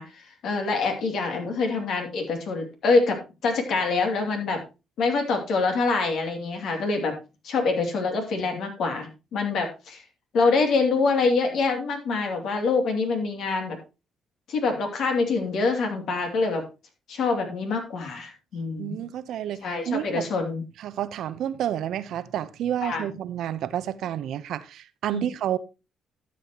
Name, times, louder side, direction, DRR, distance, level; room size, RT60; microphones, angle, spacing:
voice 1, 0.0-4.6 5.0-7.2 7.4-10.0 10.3-13.8 14.5-16.6 17.1-19.0 19.6-20.6 22.8-23.1 25.1-25.3, left 4 dB, 75° left, 2.6 m, -25 dB
voice 2, 18.8-20.2 20.8-25.6, right 11 dB, 75° right, 0.7 m, -30 dB
12.5 x 7.5 x 3.0 m
cardioid pair, 90°, 0 cm